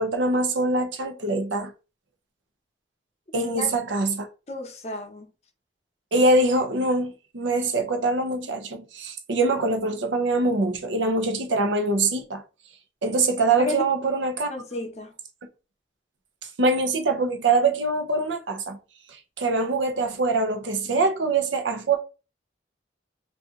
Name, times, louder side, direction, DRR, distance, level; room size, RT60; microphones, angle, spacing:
voice 1, 0.0-1.7 3.3-4.3 6.1-12.4 13.0-14.5 16.6-18.8 19.4-22.0, right 2 dB, 85° right, 0.7 m, -23 dB
voice 2, 3.3-3.7 4.5-5.3 13.6-13.8 14.5-15.1, left 2 dB, 35° left, 0.7 m, -33 dB
2.7 x 2.4 x 3.6 m
head